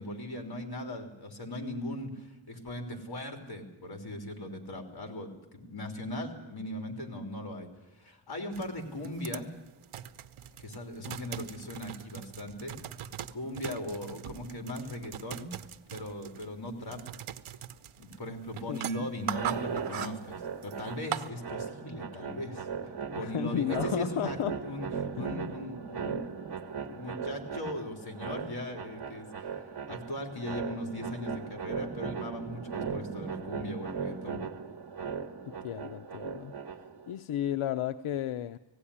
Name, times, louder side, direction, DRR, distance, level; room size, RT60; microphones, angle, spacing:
voice 1, 0.0-9.5 10.6-12.7 13.3-15.5 15.9-17.0 18.0-24.4 24.6-26.2 26.8-34.4, left 1 dB, 50° left, 4 dB, 3.5 m, -39 dB
sound 1, 8.5-21.3, right 10 dB, 85° right, 0.9 m, -41 dB
voice 2, 18.7-19.1 23.1-24.6 25.2-25.5 35.6-36.5 37.1-38.6, left 11 dB, 80° left, 11 dB, 0.7 m, -33 dB
sound 2, 19.2-37.1, right 6 dB, 55° right, 1.3 m, -38 dB
18.0 x 16.0 x 9.9 m, 0.95 s
wide cardioid pair, 110°, 48 cm